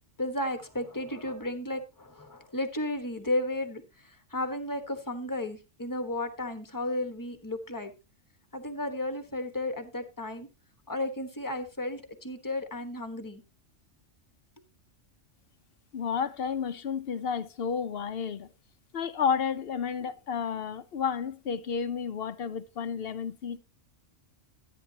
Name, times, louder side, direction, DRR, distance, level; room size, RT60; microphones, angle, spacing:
voice 1, 0.2-7.9 8.5-10.5 10.9-13.4, left 1 dB, 15° left, 1.2 m, -33 dB
voice 2, 15.9-18.5 18.9-23.6, left 6 dB, 55° left, 0.9 m, -31 dB
13.5 x 9.5 x 2.8 m
omnidirectional pair, 1.3 m